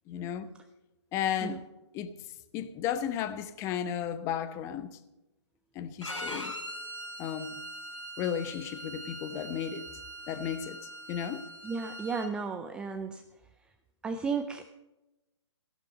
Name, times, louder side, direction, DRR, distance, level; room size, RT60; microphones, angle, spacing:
voice 1, 0.1-0.5 1.1-1.6 1.9-2.1 2.5-5.0 5.7-6.5 7.2-7.6 8.2-9.8 10.3-10.8 11.1-11.4, left 9 dB, 20° left, 0.9 m, -34 dB
Bowed string instrument, 6.0-12.3, equal, 85° left, 3.8 m, -42 dB
voice 2, 11.6-13.2 14.0-14.7, right 5 dB, 5° right, 0.4 m, -34 dB
16.0 x 11.5 x 5.4 m
figure-of-eight pair, 135°, 15 cm